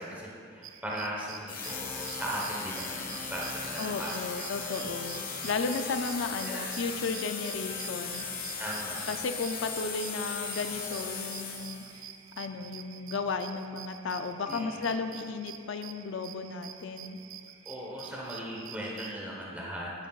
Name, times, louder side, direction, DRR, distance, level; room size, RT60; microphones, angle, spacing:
voice 1, 0.0-4.2 6.1-6.6 8.6-9.1 14.5-14.8 17.6-19.9, right 1 dB, 5° right, -4 dB, 1.0 m, -38 dB
sound 1, 0.6-19.2, right 9 dB, 70° right, 0.4 m, -48 dB
sound 2, 1.5-12.0, left 5 dB, 40° left, 1.1 m, -38 dB
voice 2, 3.8-8.6 9.1-12.1 12.4-17.2, left 4 dB, 60° left, 7 dB, 0.4 m, -34 dB
11.0 x 10.0 x 2.4 m, 2.3 s
head